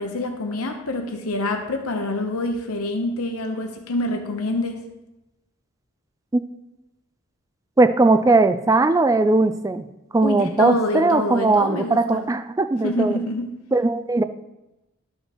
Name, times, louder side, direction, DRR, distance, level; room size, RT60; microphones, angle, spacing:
voice 1, 0.0-4.8 10.2-12.2 12.8-13.6, left 2 dB, 90° left, 4 dB, 0.9 m, -26 dB
voice 2, 7.8-9.8 10.1-13.2 13.7-14.2, right 2 dB, 15° right, 11 dB, 0.3 m, -19 dB
13.0 x 5.4 x 3.0 m, 1.0 s
head